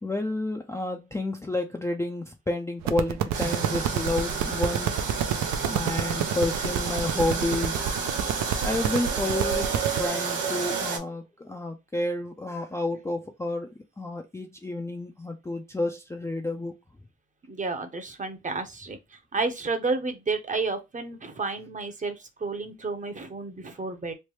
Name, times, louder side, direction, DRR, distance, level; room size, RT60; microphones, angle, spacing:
voice 1, 0.0-5.1 5.6-7.9 8.6-13.7 14.0-16.7, left 2 dB, 10° left, 0.4 m, -30 dB
sound 1, 2.8-10.0, right 10 dB, 65° right, 0.5 m, -29 dB
sound 2, 3.3-11.0, right 6 dB, 85° right, 1.3 m, -30 dB
voice 2, 17.5-19.0 19.3-24.1, right 3 dB, 25° right, 0.7 m, -31 dB
3.2 x 2.1 x 2.9 m
cardioid pair, 90°, 30 cm